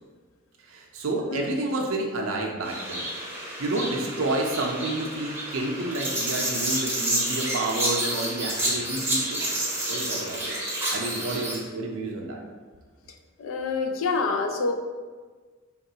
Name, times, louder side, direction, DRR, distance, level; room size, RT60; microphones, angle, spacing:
voice 1, 0.7-3.1 3.6-9.5 9.9-10.5 10.9-12.4, right 2 dB, 75° right, 1 dB, 0.5 m, -30 dB
sound 1, 2.6-11.6, right 1 dB, 10° right, 0.7 m, -29 dB
voice 2, 13.4-14.7, left 4 dB, 70° left, 4 dB, 0.4 m, -27 dB
3.6 x 2.3 x 2.7 m, 1.4 s
head